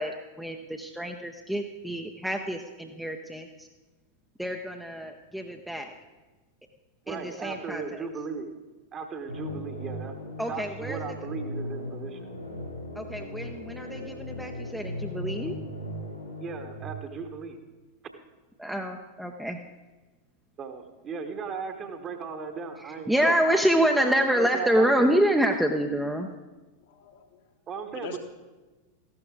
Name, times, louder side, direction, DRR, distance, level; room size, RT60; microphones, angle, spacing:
voice 1, 0.0-3.7 4.4-5.9 7.1-7.8 10.4-11.0 13.0-15.6 18.6-19.6 23.1-26.3, equal, ahead, 2 dB, 0.7 m, -27 dB
voice 2, 7.0-8.5 8.9-10.1 10.5-12.3 16.4-17.6 20.6-23.6 24.0-25.2 27.7-28.2, right 5 dB, 30° right, 6 dB, 1.2 m, -37 dB
sound 1, 9.3-16.8, left 1 dB, 85° left, 3.0 m, -37 dB
voice 3, 26.5-27.5 27.9-28.2, left 6 dB, 55° left, 4 dB, 1.4 m, -44 dB
14.5 x 12.0 x 3.8 m, 1.2 s
figure-of-eight pair, 90°, 0 cm